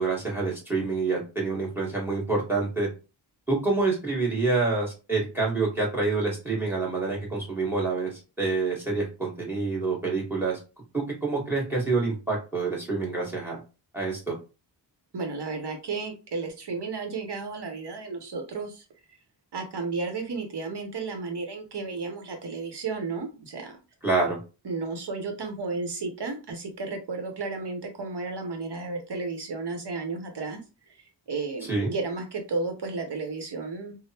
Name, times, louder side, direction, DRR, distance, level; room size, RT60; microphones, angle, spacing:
voice 1, 0.0-2.9 3.5-10.6 10.9-13.6 13.9-14.3 24.0-24.4 31.6-31.9, right 3 dB, 5° right, -2 dB, 1.5 m, -27 dB
voice 2, 15.1-18.8 19.5-23.8 24.6-30.6 31.3-34.0, right 4 dB, 65° right, 4 dB, 0.9 m, -33 dB
3.3 x 2.0 x 2.8 m, 0.31 s
wide cardioid pair, 70°, 43 cm